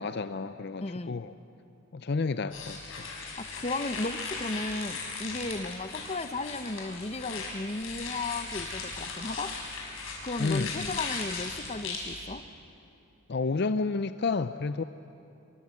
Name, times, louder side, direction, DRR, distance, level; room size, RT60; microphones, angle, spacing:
voice 1, 0.0-1.3 1.9-3.1 10.4-11.0 13.3-14.8, left 4 dB, 50° left, 11 dB, 0.5 m, -31 dB
voice 2, 0.8-1.2 3.4-9.5 10.2-12.4, left 2 dB, 30° left, 11 dB, 0.8 m, -35 dB
sound 1, 2.5-12.2, left 4 dB, 70° left, 6.0 m, -38 dB
27.5 x 23.0 x 8.4 m, 2.8 s
head